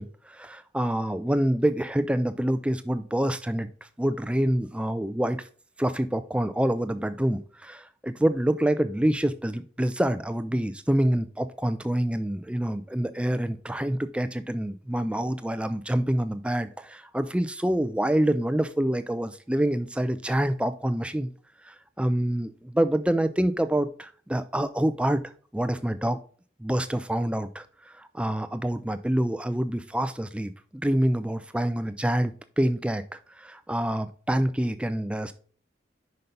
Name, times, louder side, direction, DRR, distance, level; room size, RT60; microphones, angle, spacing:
voice 1, 0.0-3.7 4.0-5.5 5.8-21.3 21.6-25.2 25.5-26.2 26.6-35.3, right 1 dB, 5° right, 11 dB, 0.3 m, -26 dB
5.6 x 5.3 x 3.9 m, 0.43 s
head